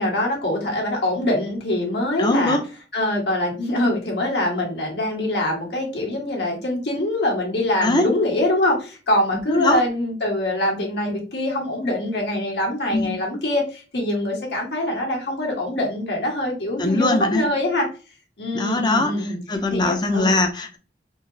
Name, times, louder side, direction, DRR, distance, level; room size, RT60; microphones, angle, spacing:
voice 1, 0.0-2.6 2.9-17.9 18.4-19.4 19.7-20.4, left 1 dB, 70° left, -1 dB, 1.4 m, -24 dB
voice 2, 2.2-2.6 7.8-8.1 9.5-9.8 12.9-13.1 16.8-17.5 18.5-20.8, left 2 dB, 25° left, 6 dB, 0.5 m, -21 dB
3.8 x 2.9 x 2.7 m, 0.35 s
head